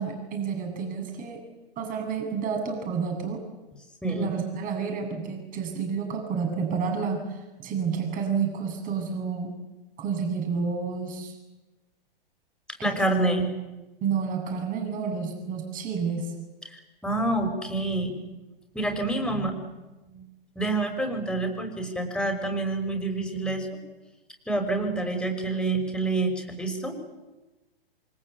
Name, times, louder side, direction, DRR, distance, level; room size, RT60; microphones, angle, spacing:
voice 1, 0.0-1.4 1.8-3.4 4.1-9.5 10.0-11.3 12.8-13.0 14.0-16.3, right 6 dB, 30° right, 4 dB, 7.7 m, -30 dB
voice 2, 4.0-4.3 12.8-13.5 16.7-18.2 18.7-19.6 20.1-20.2 20.6-23.7 24.5-27.0, right 2 dB, 5° left, 4 dB, 5.9 m, -27 dB
27.5 x 25.0 x 8.5 m, 1.1 s
figure-of-eight pair, 115°, 29 cm